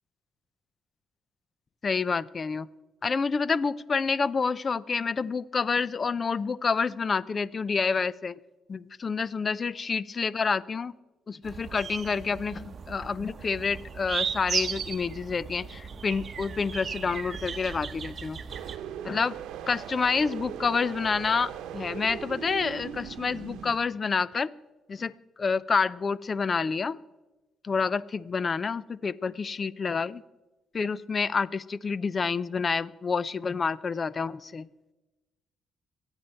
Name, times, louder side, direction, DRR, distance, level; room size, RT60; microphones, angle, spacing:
voice 1, 1.8-2.7 3.0-8.3 8.7-10.9 11.3-18.4 19.0-19.4 19.7-24.5 24.9-25.1 25.4-27.0 27.7-30.2 30.7-34.7, left 5 dB, 40° left, 20 dB, 0.5 m, -28 dB
sound 1, 11.4-18.8, right 6 dB, 45° right, 0.9 m, -36 dB
sound 2, 18.5-23.8, right 9 dB, 85° right, 0.9 m, -39 dB
24.5 x 9.0 x 4.4 m, 1.1 s
cardioid pair, 90°, 0 cm